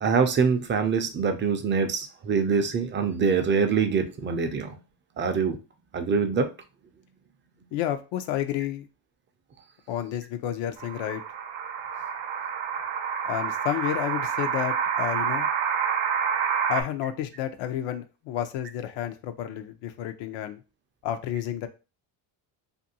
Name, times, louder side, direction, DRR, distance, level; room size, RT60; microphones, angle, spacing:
voice 1, 0.0-4.8 5.2-5.6 5.9-6.5, right 5 dB, 25° right, 7 dB, 0.4 m, -24 dB
voice 2, 7.7-8.9 9.9-11.2 13.3-15.5 16.7-20.6 21.0-21.7, left 11 dB, 75° left, 8 dB, 0.6 m, -30 dB
sound 1, 10.8-16.8, right 7 dB, 75° right, 0.7 m, -28 dB
2.6 x 2.5 x 2.7 m, 0.30 s
cardioid pair, 115°, 46 cm